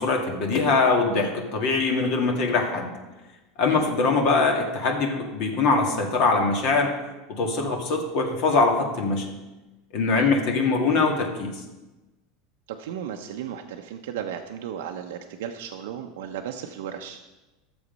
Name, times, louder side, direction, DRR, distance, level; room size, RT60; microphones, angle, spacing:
voice 1, 0.0-2.9 3.6-6.9 7.3-9.3 9.9-11.5, left 3 dB, 50° left, 1 dB, 1.8 m, -22 dB
voice 2, 12.7-17.2, right 9 dB, 85° right, 4 dB, 0.8 m, -35 dB
12.5 x 7.3 x 5.3 m, 1.1 s
supercardioid pair, 160°, 0 cm